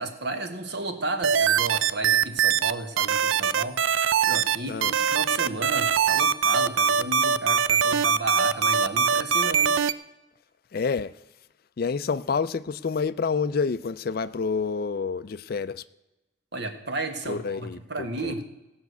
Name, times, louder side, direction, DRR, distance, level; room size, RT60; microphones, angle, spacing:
voice 1, 0.0-3.8 4.2-9.8 16.5-18.5, right 2 dB, 60° right, 1.5 m, -33 dB
sound 1, 1.2-2.7 3.0-4.6 4.8-9.9, right 7 dB, 90° right, 0.5 m, -22 dB
voice 2, 10.7-11.2 11.8-15.8 17.3-18.3, left 5 dB, 50° left, 0.4 m, -28 dB
17.5 x 5.9 x 8.1 m
head